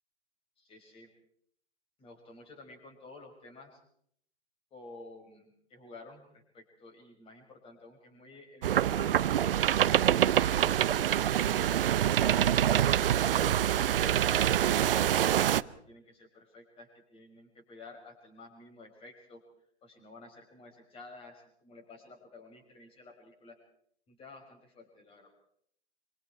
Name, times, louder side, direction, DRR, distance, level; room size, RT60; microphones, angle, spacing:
voice 1, 0.6-1.1 2.0-3.8 4.7-11.9 12.3-14.5 14.8-19.4 19.8-23.6 24.1-25.3, left 2 dB, 15° left, 4 dB, 6.0 m, -52 dB
sound 1, 8.6-15.6, right 10 dB, 55° right, 0.8 m, -25 dB
26.0 x 25.5 x 4.6 m, 0.67 s
figure-of-eight pair, 130°, 34 cm